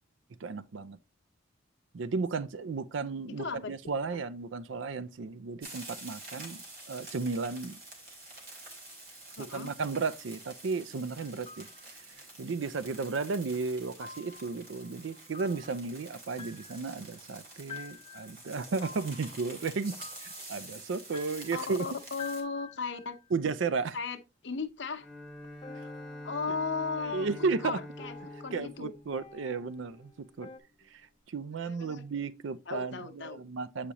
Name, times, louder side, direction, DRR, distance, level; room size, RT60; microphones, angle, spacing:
voice 1, 0.4-1.0 1.9-7.8 9.4-11.7 12.0-20.0 20.2-21.9 23.3-24.0 27.0-27.8 28.5-30.5 30.9-33.9, right 4 dB, 65° right, 0.4 m, -34 dB
voice 2, 3.4-3.7 4.1-4.2 9.4-9.7 21.5-23.2 23.9-24.2 24.4-25.1 26.2-27.3 27.6-28.9 31.6-32.0 32.7-33.4, left 4 dB, 60° left, 0.9 m, -36 dB
sound 1, 5.6-22.4, right 2 dB, 45° right, 2.6 m, -48 dB
sound 2, 11.2-11.9 14.0-23.2 25.6-30.6, left 4 dB, 25° left, 0.7 m, -50 dB
Bowed string instrument, 25.0-30.1, left 1 dB, 5° left, 1.2 m, -46 dB
8.4 x 5.0 x 2.9 m
head